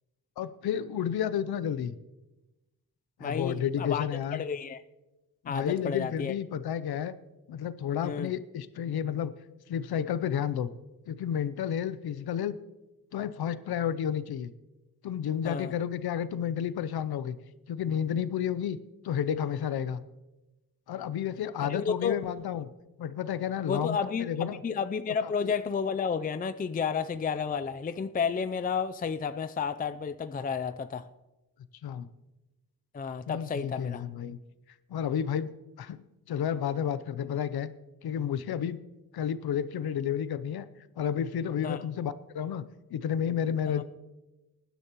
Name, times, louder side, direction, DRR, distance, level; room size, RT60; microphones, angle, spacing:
voice 1, 0.4-1.9 3.2-4.4 5.4-7.1 7.5-9.3 9.7-10.7 11.1-12.5 13.1-14.5 15.0-17.4 17.7-18.8 19.0-20.0 20.9-22.7 23.0-24.6 25.2-25.5 31.8-32.1 33.3-34.4 34.9-35.5 35.8-37.7 38.0-38.8 39.1-40.7 41.0-43.8, left 9 dB, 90° left, 15 dB, 0.6 m, -31 dB
voice 2, 3.2-4.0 4.3-4.8 5.5-6.3 8.0-8.3 15.4-15.7 21.7-22.2 23.7-31.1 32.9-34.0 41.6-41.8 43.7-43.8, left 6 dB, 25° left, 11 dB, 0.4 m, -31 dB
19.5 x 10.0 x 3.0 m, 1.0 s
cardioid pair, 90°, 37 cm